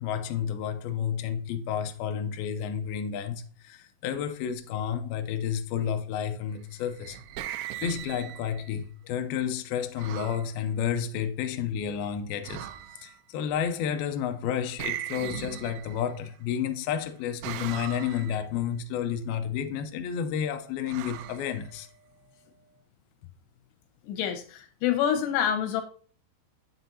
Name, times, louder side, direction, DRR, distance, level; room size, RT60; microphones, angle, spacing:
voice 1, 0.0-7.2 7.8-12.7 13.0-21.9, left 8 dB, 90° left, 2.2 m, -31 dB
sound 1, 6.7-8.7 10.0-10.5 12.4-13.2 14.8-16.3 17.4-18.4 20.9-22.1, right 12 dB, 85° right, 2.3 m, -39 dB
voice 2, 24.0-25.8, left 9 dB, 75° left, 2.9 m, -27 dB
7.6 x 6.8 x 2.7 m
omnidirectional pair, 5.2 m